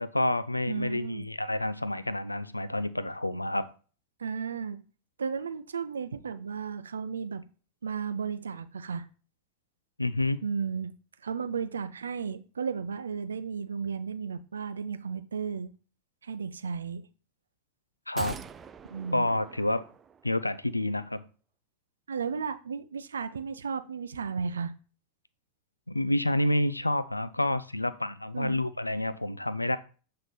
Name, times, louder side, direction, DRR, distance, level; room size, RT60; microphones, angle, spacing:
voice 1, 0.0-3.7 10.0-10.4 18.1-18.4 19.1-19.8 20.2-21.2 25.9-29.8, left 1 dB, 85° left, 0.4 m, -29 dB
voice 2, 0.7-1.3 4.2-4.8 5.2-7.4 7.8-9.1 10.4-10.9 11.2-15.7 16.2-17.0 18.9-19.3 22.1-24.7 28.3-28.6, right 6 dB, 70° right, 0.5 m, -34 dB
sound 1, 18.2-20.5 20.8-20.9, right 6 dB, 20° right, 0.4 m, -44 dB
7.5 x 3.2 x 4.1 m
figure-of-eight pair, 90°, 0 cm